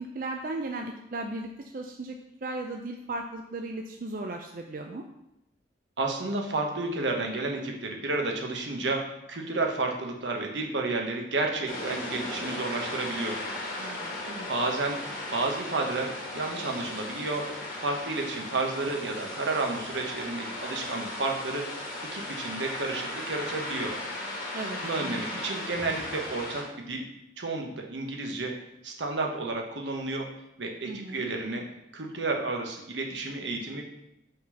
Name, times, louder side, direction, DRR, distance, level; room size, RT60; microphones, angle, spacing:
voice 1, 0.0-2.2 2.4-5.0 13.8-14.5 24.5-25.2 30.9-31.3, right 2 dB, 50° right, 3 dB, 0.4 m, -36 dB
voice 2, 6.0-13.4 14.5-15.0 15.3-17.4 17.8-21.6 22.1-24.0 24.8-27.0 27.4-28.5 28.8-30.3 30.6-31.6 31.9-33.8, right 3 dB, 85° right, 2 dB, 1.1 m, -31 dB
sound 1, 11.7-26.6, left 2 dB, 50° left, 1.5 m, -37 dB
5.2 x 4.1 x 5.7 m, 0.90 s
head